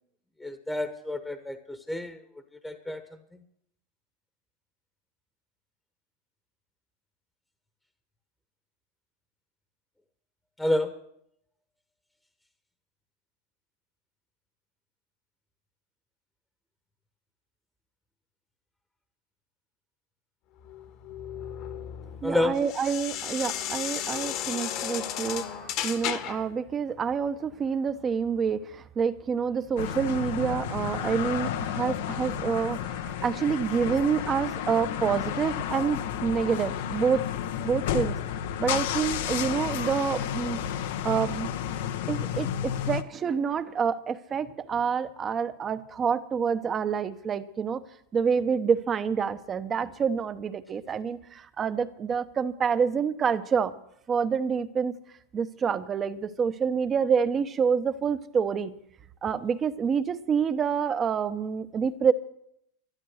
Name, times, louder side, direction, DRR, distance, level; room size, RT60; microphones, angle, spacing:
voice 1, 0.4-2.2 2.6-3.0 10.6-10.9 22.2-22.6, left 1 dB, 5° left, 9 dB, 1.2 m, -29 dB
sound 1, 20.7-26.5, left 10 dB, 50° left, 1.5 m, -34 dB
voice 2, 22.2-37.3 37.6-38.1 38.6-40.6 41.0-41.5 42.1-47.8 48.1-51.2 51.6-53.7 54.1-54.9 55.3-58.7 59.2-62.1, right 6 dB, 25° right, 12 dB, 1.0 m, -27 dB
sound 2, 29.8-43.0, left 9 dB, 70° left, 1.0 m, -31 dB
12.5 x 12.0 x 6.5 m, 0.72 s
hypercardioid pair, 110°, 0 cm